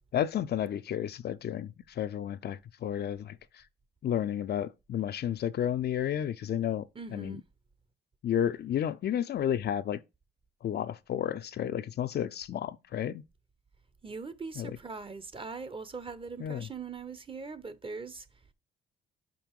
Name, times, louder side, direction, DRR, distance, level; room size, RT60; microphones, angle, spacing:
voice 1, 0.1-3.4 4.0-7.4 8.2-10.0 10.6-13.2 14.6-14.7 16.4-16.7, left 10 dB, 55° left, 0.5 m, -32 dB
voice 2, 6.9-7.4 14.0-18.3, right 4 dB, 25° right, 0.9 m, -41 dB
5.6 x 5.3 x 4.5 m
cardioid pair, 90°, 20 cm